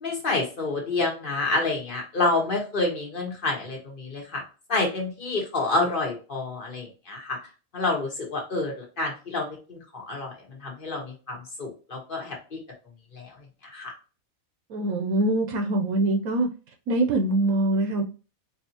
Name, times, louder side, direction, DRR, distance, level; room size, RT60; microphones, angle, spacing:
voice 1, 0.0-4.4 4.7-7.4 7.7-10.3 10.6-12.6 13.1-13.3 13.7-13.9, left 2 dB, 40° left, 1.3 m, -28 dB
voice 2, 14.7-16.5 16.9-18.0, right 2 dB, 80° right, 1.1 m, -23 dB
4.6 x 2.7 x 2.8 m
omnidirectional pair, 1.5 m